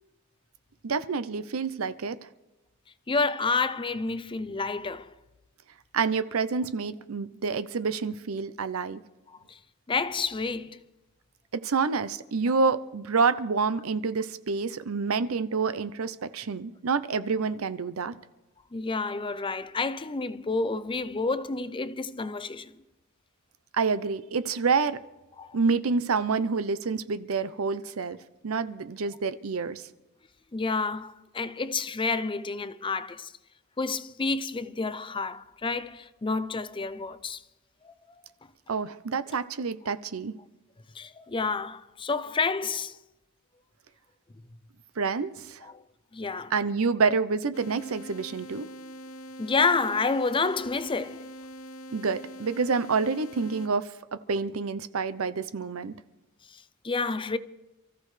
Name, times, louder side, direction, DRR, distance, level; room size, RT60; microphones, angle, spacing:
voice 1, 0.8-2.2 5.9-9.0 11.5-18.1 23.7-25.0 25.5-28.2 28.4-29.8 38.7-40.3 45.0-45.7 46.5-48.7 51.9-55.9, right 4 dB, 70° right, 0.6 m, -28 dB
voice 2, 3.1-5.1 9.9-10.8 18.7-22.7 25.4-25.5 30.5-33.3 33.8-37.4 37.8-37.9 40.9-43.0 45.7-45.8 46.1-46.5 49.4-51.3 56.5-57.4, left 4 dB, 25° left, 0.5 m, -29 dB
sound 1, 47.5-53.7, equal, 65° left, 0.6 m, -43 dB
28.0 x 14.5 x 3.3 m
head